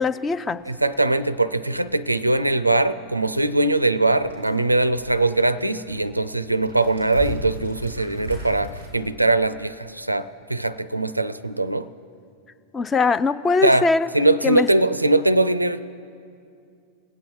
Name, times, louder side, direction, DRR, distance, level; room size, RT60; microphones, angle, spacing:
voice 1, 0.0-0.6 12.7-14.1 14.4-14.7, left 4 dB, 20° left, 15 dB, 0.4 m, -21 dB
sound 1, 0.6-8.9, left 2 dB, 90° left, 3.4 m, -39 dB
voice 2, 0.7-11.9 13.6-13.9 14.1-15.8, right 2 dB, 85° right, 15 dB, 0.4 m, -21 dB
20.5 x 8.3 x 4.7 m, 2.4 s
figure-of-eight pair, 90°, 0 cm